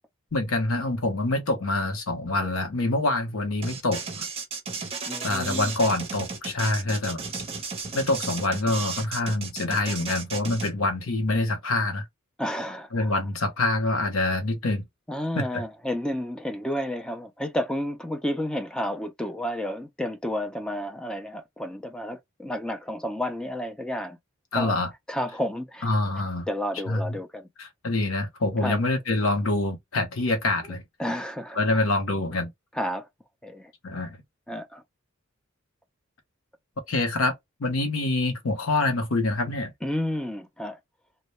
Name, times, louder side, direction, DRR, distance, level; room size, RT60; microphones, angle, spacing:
voice 1, 0.3-4.0 5.2-7.2 7.9-12.0 12.9-14.9 15.4-15.6 24.5-24.9 25.8-26.5 26.9-27.2 27.6-30.8 31.6-32.5 33.8-34.2 36.9-37.3 37.6-39.7, left 2 dB, 75° left, 0.8 m, -26 dB
sound 1, 3.6-10.7, right 5 dB, 30° right, 0.7 m, -34 dB
voice 2, 5.0-5.7 12.4-13.2 15.1-24.2 24.5-24.8 25.1-25.9 26.5-27.5 28.6-28.8 30.6-30.7 31.0-31.8 32.7-33.1 33.4-33.7 34.5-34.8 39.8-40.8, left 1 dB, 5° left, 0.3 m, -31 dB
2.1 x 2.1 x 2.9 m
head